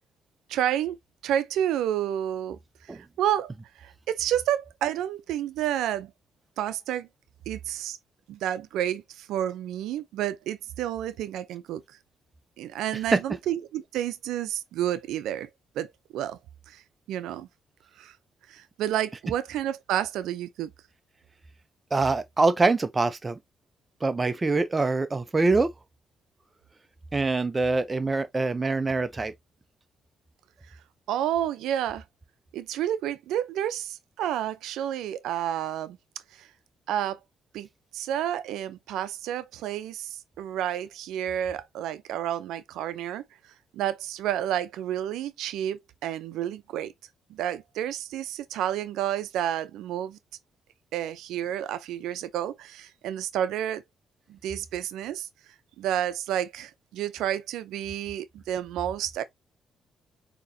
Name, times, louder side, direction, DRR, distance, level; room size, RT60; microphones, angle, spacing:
voice 1, 0.5-1.0 1.2-6.1 6.6-7.1 7.5-8.0 8.3-12.0 12.6-15.5 15.8-16.4 16.7-16.8 17.1-17.5 18.0-18.2 18.5-20.7 30.7-30.8 31.1-32.0 32.5-36.0 36.3-36.5 36.9-37.2 37.5-37.7 37.9-46.9 47.3-50.2 50.9-53.8 54.3-55.3 55.8-59.2, right 11 dB, 85° right, 0.4 m, -30 dB
voice 2, 21.9-23.4 24.0-25.7 27.1-29.3, right 3 dB, 25° right, 0.5 m, -24 dB
6.7 x 2.9 x 2.6 m
cardioid pair, 90°, 0 cm